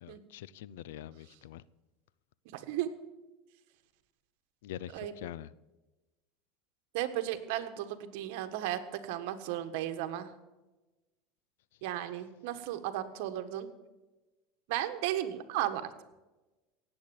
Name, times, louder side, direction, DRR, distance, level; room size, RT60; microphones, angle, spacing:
voice 1, 0.0-1.6 4.6-5.5, left 12 dB, 85° left, 20 dB, 0.5 m, -44 dB
voice 2, 2.5-2.9 4.9-5.1 6.9-10.3 11.8-13.7 14.7-15.8, right 12 dB, 70° right, 9 dB, 1.5 m, -35 dB
18.0 x 8.4 x 7.1 m, 1.1 s
supercardioid pair, 125°, 0 cm